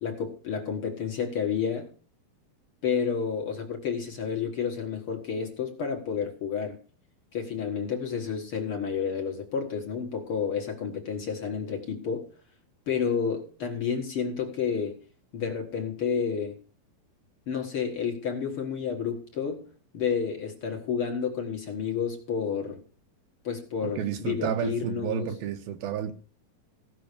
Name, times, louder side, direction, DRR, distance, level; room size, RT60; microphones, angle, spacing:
voice 1, 0.0-1.9 2.8-6.8 7.3-12.2 12.9-15.0 15.3-16.6 17.5-19.7 19.9-22.8 23.4-25.3, left 6 dB, 50° left, 1.8 m, -30 dB
voice 2, 23.8-26.1, right 9 dB, 75° right, 3.0 m, -31 dB
16.5 x 6.0 x 6.7 m
omnidirectional pair, 4.4 m